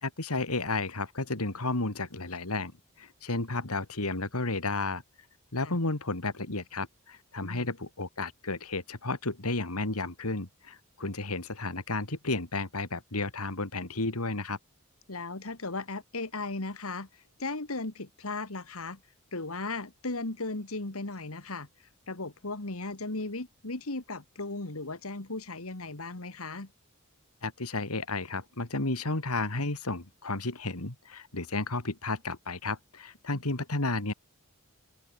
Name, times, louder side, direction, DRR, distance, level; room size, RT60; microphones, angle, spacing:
voice 1, 0.0-2.7 3.0-5.0 5.5-14.6 27.4-34.1, left 2 dB, 85° left, 2.9 m, -32 dB
voice 2, 15.1-19.0 19.3-21.7 22.1-26.7, left 3 dB, 70° left, 2.2 m, -36 dB
open air
head